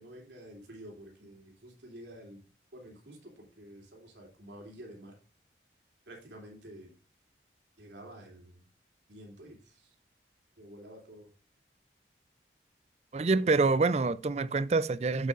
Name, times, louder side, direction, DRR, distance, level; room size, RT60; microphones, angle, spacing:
voice 1, 0.0-2.4 2.7-5.2 6.1-6.9 7.8-8.6 9.1-9.9 10.6-11.3, right 1 dB, 85° right, 3.0 m, -49 dB
voice 2, 13.1-15.3, right 3 dB, 35° right, 0.4 m, -26 dB
8.2 x 8.2 x 2.5 m
head